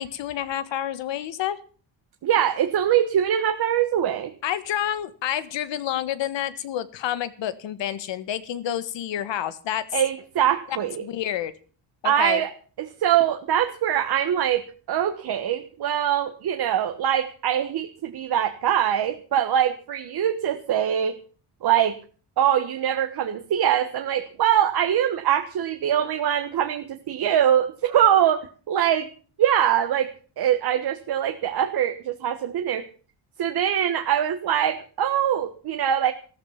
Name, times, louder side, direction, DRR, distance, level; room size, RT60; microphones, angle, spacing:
voice 1, 0.0-1.6 4.4-9.8 11.0-11.5 12.0-12.4, left 11 dB, 75° left, 13 dB, 1.6 m, -29 dB
voice 2, 2.2-4.3 9.9-11.0 12.0-12.5 12.8-21.2 21.6-22.0 22.4-29.1 29.4-32.9 33.4-36.1, right 10 dB, 55° right, 6 dB, 1.4 m, -23 dB
14.5 x 14.0 x 5.9 m, 0.40 s
cardioid pair, 140°, 44 cm